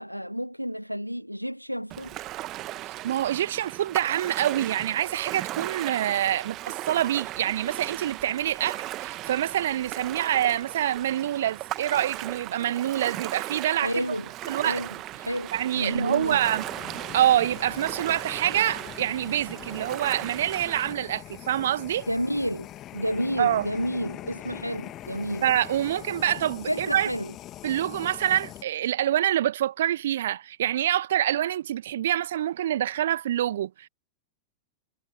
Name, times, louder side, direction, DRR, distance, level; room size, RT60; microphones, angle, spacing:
voice 1, 0.0-2.2 13.8-14.9 15.2-16.4 22.1-22.7 22.9-25.5 26.7-27.3, equal, 90° right, 0.4 m, -30 dB
Ocean, 1.9-20.9, right 16 dB, 35° right, 1.4 m, -37 dB
voice 2, 2.9-14.0 14.5-14.8 15.5-16.6 17.1-22.1 23.4-23.7 25.4-27.1 27.6-33.9, right 11 dB, 60° right, 1.6 m, -26 dB
Fire, 16.2-28.6, left 14 dB, 35° left, 1.7 m, -42 dB
figure-of-eight pair, 90°, 0 cm